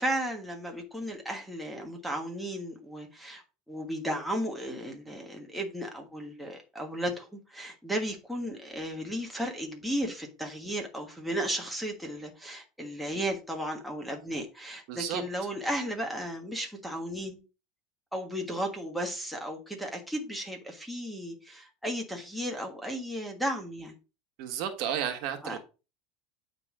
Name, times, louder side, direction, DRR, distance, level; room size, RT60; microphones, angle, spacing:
voice 1, 0.0-17.4 18.1-23.9 25.4-25.6, equal, ahead, 1.5 m, -34 dB
voice 2, 14.9-15.2 24.4-25.6, right 9 dB, 55° right, 1.5 m, -32 dB
8.8 x 4.0 x 4.9 m
supercardioid pair, 155°, 0 cm